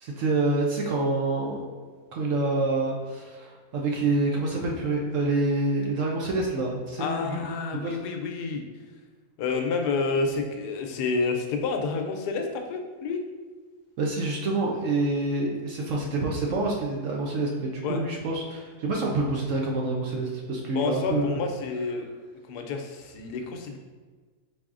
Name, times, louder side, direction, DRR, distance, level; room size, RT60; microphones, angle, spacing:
voice 1, 0.0-1.6 2.1-7.5 7.7-8.0 14.0-21.4, right 2 dB, 65° right, -1 dB, 0.8 m, -27 dB
voice 2, 7.0-8.6 9.4-13.2 17.8-18.0 20.7-22.1 22.5-23.8, left 4 dB, 85° left, 4 dB, 1.2 m, -29 dB
4.6 x 4.1 x 2.5 m, 1.4 s
omnidirectional pair, 1.7 m